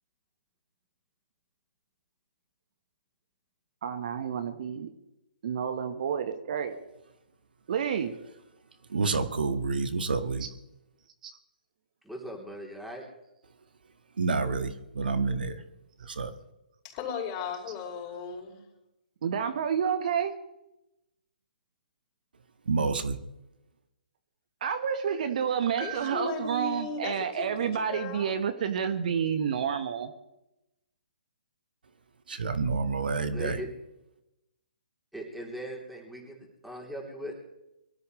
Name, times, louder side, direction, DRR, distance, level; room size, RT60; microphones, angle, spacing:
voice 1, 3.8-4.9 5.4-6.8 7.7-8.1 10.4-10.5 17.7-17.8 19.2-20.4 24.6-30.1, right 7 dB, 55° right, 8 dB, 1.4 m, -29 dB
voice 2, 8.9-10.5 14.2-15.6 16.1-16.3 22.6-23.2 32.3-33.6, right 4 dB, 70° right, 9 dB, 1.7 m, -28 dB
voice 3, 12.0-13.0 33.3-33.7 35.1-37.4, equal, ahead, -1 dB, 3.4 m, -39 dB
voice 4, 16.8-18.6 25.8-28.4, left 5 dB, 30° left, 0 dB, 5.6 m, -36 dB
24.0 x 13.0 x 3.3 m, 0.91 s
figure-of-eight pair, 135°, 5 cm